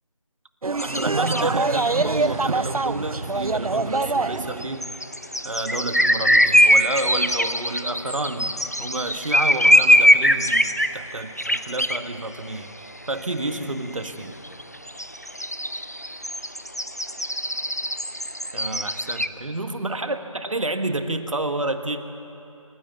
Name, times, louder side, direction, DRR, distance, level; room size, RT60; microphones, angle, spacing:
sound 1, 0.6-4.7, right 3 dB, 80° right, 0.7 m, -24 dB
sound 2, 0.8-2.2 4.6-10.9 11.4-12.0 13.1-13.2 13.5-13.6 13.8-13.9 14.4-19.3, equal, 30° left, 0.5 m, -21 dB
voice 1, 0.8-4.9 5.4-12.7 13.1-14.4 18.5-22.0, right 2 dB, 65° right, 8 dB, 1.7 m, -30 dB
27.0 x 16.0 x 9.3 m, 2.9 s
figure-of-eight pair, 175°, 18 cm